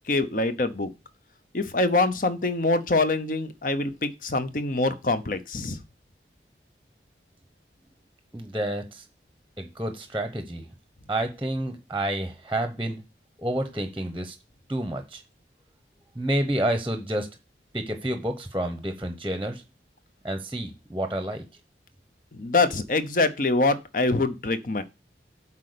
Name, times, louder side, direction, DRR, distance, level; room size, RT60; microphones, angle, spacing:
voice 1, 0.1-0.9 1.5-5.8 22.4-24.8, left 2 dB, 50° left, 12 dB, 0.8 m, -24 dB
voice 2, 8.3-9.0 9.6-10.7 11.1-13.0 13.4-14.3 14.7-15.2 16.2-17.3 17.7-19.6 20.2-21.4, right 1 dB, 10° right, 7 dB, 0.8 m, -29 dB
8.2 x 4.3 x 6.7 m, 0.27 s
head